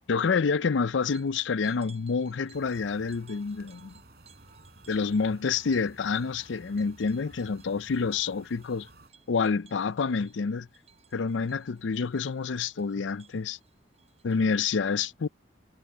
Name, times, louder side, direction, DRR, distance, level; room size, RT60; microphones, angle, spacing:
voice 1, 0.1-3.9 4.9-8.9 9.3-10.7 11.1-13.6 14.2-15.3, left 5 dB, 75° left, 0.5 m, -28 dB
sound 1, 1.0-14.5, right 7 dB, 35° right, 6.7 m, -59 dB
sound 2, 2.5-9.1, right 2 dB, 50° right, 6.8 m, -55 dB
head